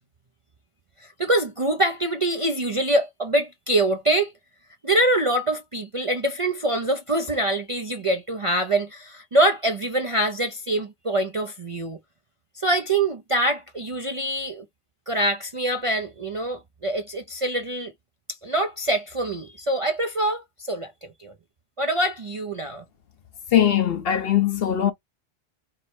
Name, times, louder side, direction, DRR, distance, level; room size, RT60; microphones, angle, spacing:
voice 1, 1.0-4.3 4.8-12.0 12.6-14.6 15.1-17.9 18.4-20.9 21.2-21.3 21.8-22.8, right 1 dB, 40° right, 0.5 m, -24 dB
voice 2, 23.5-24.9, left 10 dB, 60° left, 1.0 m, -20 dB
4.7 x 2.1 x 4.3 m
omnidirectional pair, 1.2 m